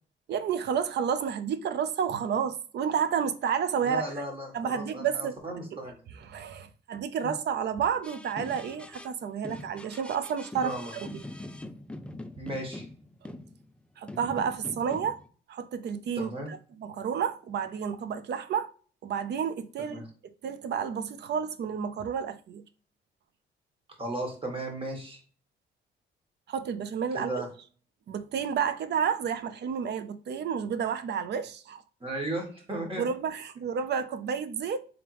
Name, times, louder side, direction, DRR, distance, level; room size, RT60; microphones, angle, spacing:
voice 1, 0.3-4.1 4.5-5.8 6.1-10.7 11.0-11.2 14.0-15.2 15.5-18.7 19.0-20.0 20.4-22.6 26.5-27.3 28.1-31.8 33.0-34.8, right 7 dB, 60° right, 0.5 m, -30 dB
voice 2, 3.8-6.0 7.2-7.3 10.6-10.9 12.4-12.9 16.2-16.5 19.9-20.0 24.0-25.2 27.2-27.5 32.0-33.0, right 1 dB, 25° right, 1.6 m, -35 dB
sound 1, 8.0-9.1 9.4-13.8 14.1-15.3, left 1 dB, 5° left, 0.3 m, -43 dB
3.6 x 3.4 x 3.0 m
cardioid pair, 90°, 20 cm